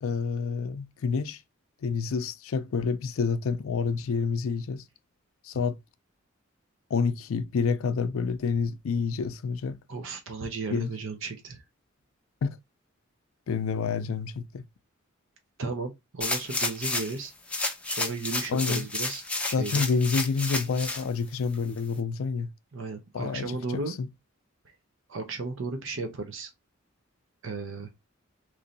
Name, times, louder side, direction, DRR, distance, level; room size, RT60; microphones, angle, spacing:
voice 1, 0.0-1.4 1.8-4.8 5.4-5.8 6.9-9.8 10.7-10.9 12.4-12.6 13.5-14.7 18.5-18.9 19.5-22.5 23.1-24.1, left 5 dB, 75° left, 0.4 m, -28 dB
voice 2, 9.9-11.6 15.6-17.3 17.9-19.2 19.5-19.8 22.7-23.9 25.1-26.5 27.4-27.9, right 3 dB, 65° right, 0.6 m, -34 dB
sound 1, 16.2-17.2 17.5-21.0 21.5-21.6, left 2 dB, 5° left, 0.5 m, -31 dB
3.1 x 2.6 x 3.9 m
head